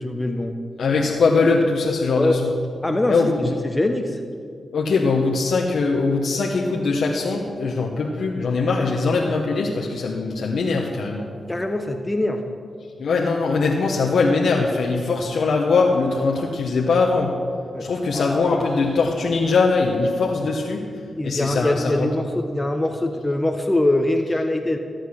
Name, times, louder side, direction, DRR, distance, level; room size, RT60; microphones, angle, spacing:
voice 1, 0.0-0.5 2.2-2.4 2.8-4.2 11.5-12.5 17.7-17.9 18.1-18.6 21.2-24.8, left 1 dB, 20° left, 5 dB, 1.1 m, -23 dB
voice 2, 0.8-2.5 3.1-3.5 4.7-11.3 13.0-17.4 17.8-20.9 21.2-22.1, left 4 dB, 75° left, -1 dB, 1.2 m, -21 dB
15.0 x 7.9 x 6.5 m, 2.2 s
cardioid pair, 50°, 0 cm